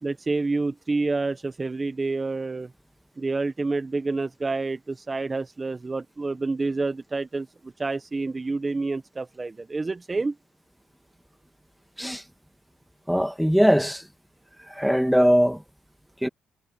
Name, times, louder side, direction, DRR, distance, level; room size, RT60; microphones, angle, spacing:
voice 1, 0.0-2.7 3.2-10.3, right 3 dB, 25° right, 1.2 m, -28 dB
voice 2, 13.1-14.0 14.7-15.6 16.2-16.3, equal, ahead, 2.1 m, -20 dB
cardioid pair, 90°, 0 cm